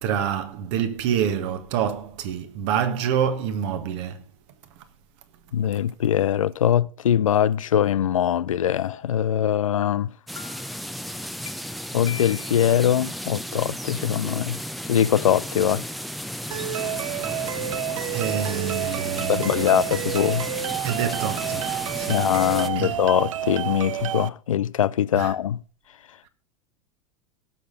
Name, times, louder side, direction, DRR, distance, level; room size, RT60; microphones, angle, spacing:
voice 1, 0.0-4.3 17.2-17.6 18.1-19.9 20.8-22.3 22.7-23.0 25.2-25.3, right 8 dB, 60° right, 1.6 m, -27 dB
voice 2, 5.5-10.1 11.9-14.6 14.9-15.8 19.2-20.5 22.1-25.6, left 10 dB, 80° left, 0.4 m, -22 dB
sound 1, 8.8-9.2 9.8-9.9 10.4-10.8 11.5-11.6 12.1-12.7, left 7 dB, 30° left, 0.9 m, -40 dB
sound 2, 10.3-22.7, equal, ahead, 0.7 m, -34 dB
sound 3, 16.5-24.3, right 10 dB, 75° right, 0.6 m, -29 dB
17.5 x 6.7 x 3.9 m
hypercardioid pair, 90°, 17 cm